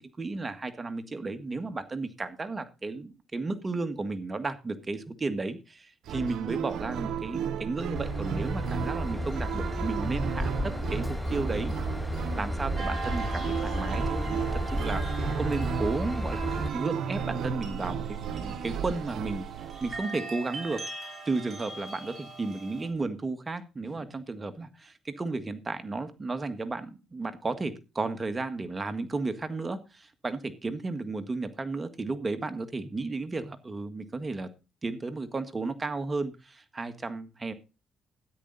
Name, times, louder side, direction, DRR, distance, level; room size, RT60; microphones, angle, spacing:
voice 1, 0.0-11.7 12.4-19.5 19.8-20.8 21.2-34.5 34.8-37.5, right 3 dB, 25° right, 10 dB, 1.7 m, -33 dB
sound 1, 6.0-20.0, right 8 dB, 80° right, 1.0 m, -34 dB
Train / Engine, 8.0-16.7, left 1 dB, 10° left, 0.7 m, -33 dB
sound 2, 12.8-22.9, right 4 dB, 45° right, 5.2 m, -41 dB
13.5 x 10.5 x 4.1 m, 0.30 s
cardioid pair, 90°, 0 cm